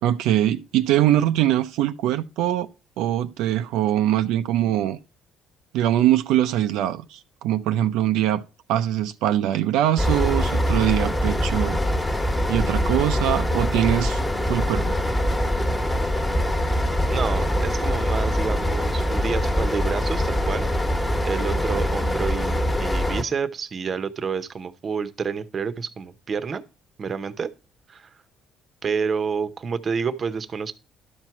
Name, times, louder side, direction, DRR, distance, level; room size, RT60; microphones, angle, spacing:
voice 1, 0.0-2.7 3.0-5.0 5.7-8.4 8.7-11.8 12.5-14.2 14.5-15.0, right 12 dB, 85° right, 0.5 m, -22 dB
sound 1, 10.0-23.2, equal, 10° left, 1.3 m, -23 dB
voice 2, 17.1-20.7 21.2-26.6 27.0-27.5 27.9-28.1 28.8-30.7, right 6 dB, 35° right, 0.8 m, -29 dB
12.0 x 4.6 x 5.9 m
cardioid pair, 115°, 0 cm